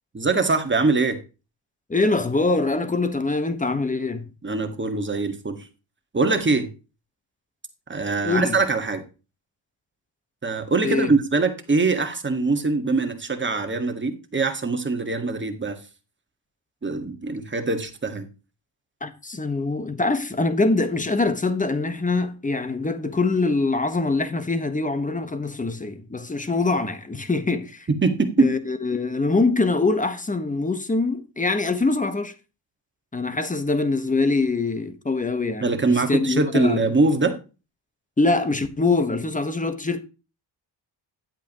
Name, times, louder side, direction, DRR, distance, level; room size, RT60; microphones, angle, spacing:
voice 1, 0.1-1.2 4.4-5.6 6.1-6.7 7.9-9.0 10.4-15.8 16.8-18.3 27.9-28.5 35.6-37.3, right 3 dB, 25° right, 1.8 m, -23 dB
voice 2, 1.9-4.3 8.2-8.6 10.8-11.1 19.0-27.9 28.4-32.3 33.1-36.9 38.2-40.0, left 3 dB, 15° left, 1.3 m, -24 dB
10.5 x 8.3 x 3.0 m
cardioid pair, 95°, 48 cm